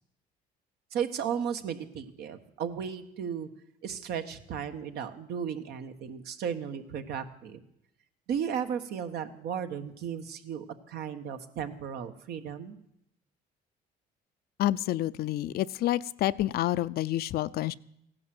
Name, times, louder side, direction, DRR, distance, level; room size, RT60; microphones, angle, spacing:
voice 1, 0.9-3.5 3.8-7.6 8.3-12.8, right 8 dB, 75° right, 8 dB, 1.4 m, -35 dB
voice 2, 14.6-17.7, left 14 dB, 65° left, 16 dB, 0.5 m, -28 dB
16.0 x 11.0 x 7.8 m, 0.76 s
cardioid pair, 110°, 17 cm